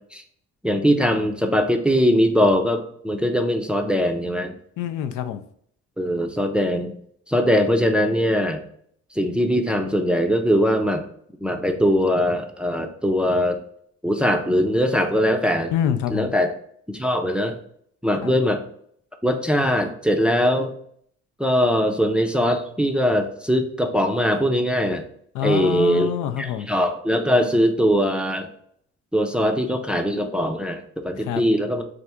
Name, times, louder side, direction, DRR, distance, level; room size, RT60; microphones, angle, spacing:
voice 1, 0.6-4.6 6.0-6.9 7.3-8.6 9.1-11.0 11.4-13.6 14.0-15.7 16.1-16.5 16.9-17.6 18.0-18.6 19.2-20.7 21.4-25.0 25.4-26.1 26.4-28.5 29.1-31.8, equal, 5° right, 4 dB, 0.4 m, -21 dB
voice 2, 4.8-5.4 15.7-16.3 18.2-18.3 25.3-26.7 31.2-31.4, left 9 dB, 80° left, 10 dB, 0.5 m, -25 dB
3.4 x 2.5 x 4.3 m, 0.65 s
cardioid pair, 90°, 30 cm